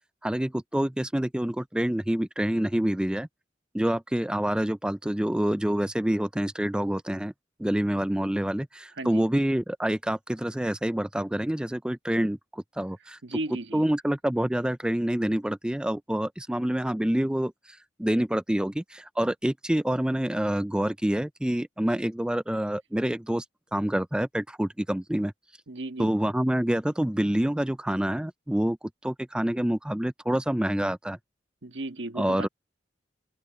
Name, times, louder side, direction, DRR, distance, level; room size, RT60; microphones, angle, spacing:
voice 1, 0.2-3.3 3.7-7.3 7.6-13.2 13.7-23.4 23.7-25.3 26.0-28.8 29.0-31.2 32.2-32.5, right 1 dB, 5° right, 0.4 m, -27 dB
voice 2, 13.2-13.8 25.7-26.1 31.6-32.5, right 2 dB, 85° right, 1.5 m, -35 dB
head